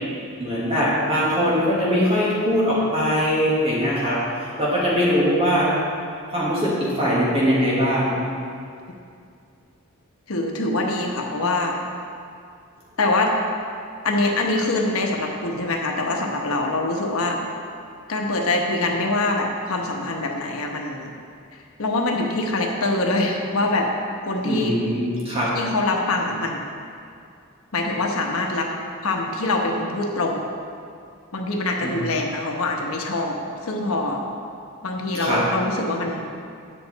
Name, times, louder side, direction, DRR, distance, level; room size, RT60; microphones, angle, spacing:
voice 1, 0.4-5.8 6.3-8.1 24.4-25.5 31.8-31.9 35.1-35.4, equal, 25° right, -7 dB, 1.7 m, -21 dB
voice 2, 10.3-11.7 13.0-13.3 14.0-17.4 18.1-21.1 21.8-23.9 24.3-24.7 25.5-26.6 27.7-28.7 29.0-30.4 31.3-33.4 33.6-34.2 34.8-36.2, left 2 dB, 80° left, 1 dB, 1.1 m, -24 dB
9.3 x 7.6 x 4.1 m, 2.4 s
head